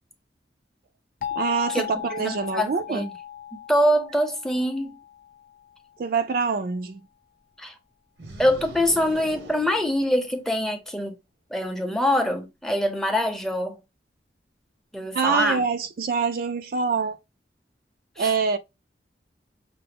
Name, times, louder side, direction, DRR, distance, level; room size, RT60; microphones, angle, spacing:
sound 1, 1.2-5.9, left 10 dB, 50° left, 0.6 m, -36 dB
voice 1, 1.4-3.1 6.0-7.0 15.1-17.2 18.2-18.6, right 5 dB, 55° right, 0.4 m, -25 dB
voice 2, 2.2-3.1 3.7-5.0 7.6-7.7 8.4-11.2 11.5-13.8 14.9-15.6 18.2-18.3, equal, 5° left, 0.6 m, -24 dB
sound 2, 8.2-10.7, right 1 dB, 75° right, 0.9 m, -43 dB
5.8 x 2.0 x 3.4 m
head